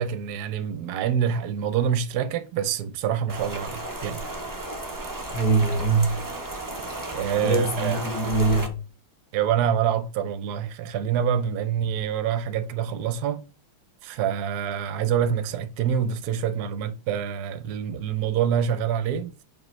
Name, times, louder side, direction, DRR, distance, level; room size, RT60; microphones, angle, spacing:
voice 1, 0.0-4.3 7.1-8.0 9.3-13.4 14.0-19.4, right 8 dB, 65° right, 1.1 m, -26 dB
Rain, 3.3-8.7, right 2 dB, 20° right, 0.5 m, -33 dB
voice 2, 5.3-6.2 7.4-8.8, right 3 dB, 55° left, 1.7 m, -23 dB
7.5 x 5.2 x 3.2 m
omnidirectional pair, 2.0 m